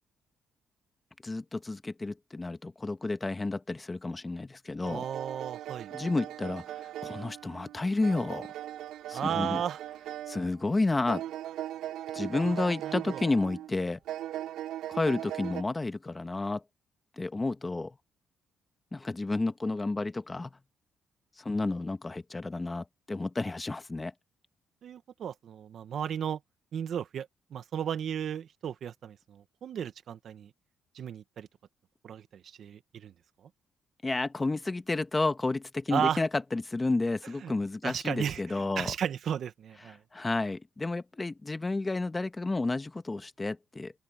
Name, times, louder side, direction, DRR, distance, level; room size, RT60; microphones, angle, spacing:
voice 1, 1.2-5.0 5.9-8.5 9.1-9.6 10.3-11.2 12.1-14.0 14.9-16.6 17.2-17.9 18.9-20.5 21.4-24.1 34.0-38.9 40.1-43.9, left 2 dB, 20° left, 1.4 m, -31 dB
sound 1, 4.8-10.7 11.1-13.7 14.1-15.6, right 12 dB, 85° right, 5.7 m, -39 dB
voice 2, 4.9-5.9 9.1-9.8 12.4-13.3 24.8-26.4 26.7-30.5 30.9-31.5 32.0-33.1 35.9-36.2 37.2-37.5 37.8-40.0, right 8 dB, 65° right, 1.5 m, -34 dB
open air
cardioid pair, 90°, 0 cm